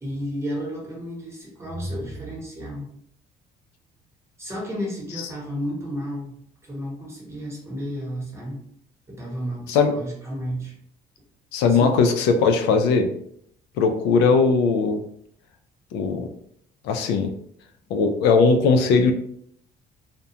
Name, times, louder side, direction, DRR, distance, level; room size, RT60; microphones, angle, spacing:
voice 1, 0.0-2.9 4.4-6.3 6.6-8.6 9.1-10.7 11.7-12.0, equal, 15° right, -2 dB, 0.9 m, -32 dB
voice 2, 11.5-13.1 13.8-15.0 15.9-16.3 16.8-17.3 17.9-19.1, left 4 dB, 90° left, 5 dB, 0.4 m, -19 dB
2.3 x 2.1 x 2.7 m, 0.68 s
cardioid pair, 110°, 17 cm